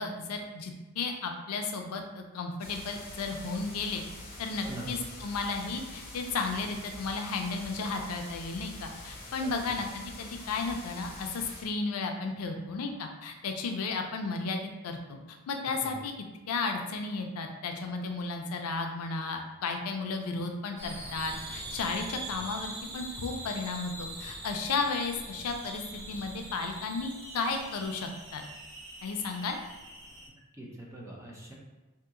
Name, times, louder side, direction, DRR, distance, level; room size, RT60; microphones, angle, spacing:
voice 1, 0.0-4.0 4.4-16.1 16.5-25.8 26.1-28.4 29.0-29.6, left 4 dB, 90° left, 4 dB, 0.5 m, -34 dB
sound 1, 2.6-11.6, left 1 dB, 40° left, 0.9 m, -45 dB
voice 2, 4.6-4.9 9.4-9.8 15.8-16.0 22.3-22.4 30.6-31.5, right 1 dB, 15° right, -2 dB, 0.6 m, -43 dB
sound 2, 20.8-30.3, right 1 dB, 55° right, 0.9 m, -43 dB
2.8 x 2.8 x 3.6 m, 1.1 s
head